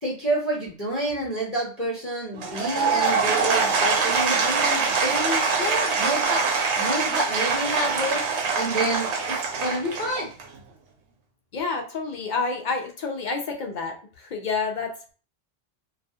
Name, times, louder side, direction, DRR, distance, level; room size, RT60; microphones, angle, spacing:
voice 1, 0.0-8.2 8.5-10.3, right 1 dB, 15° left, -4 dB, 0.7 m, -29 dB
Applause / Crowd, 2.3-10.5, right 4 dB, 85° right, 0.9 m, -24 dB
voice 2, 11.5-14.9, left 4 dB, 55° left, 3 dB, 0.5 m, -29 dB
2.3 x 2.2 x 2.7 m, 0.39 s
omnidirectional pair, 1.1 m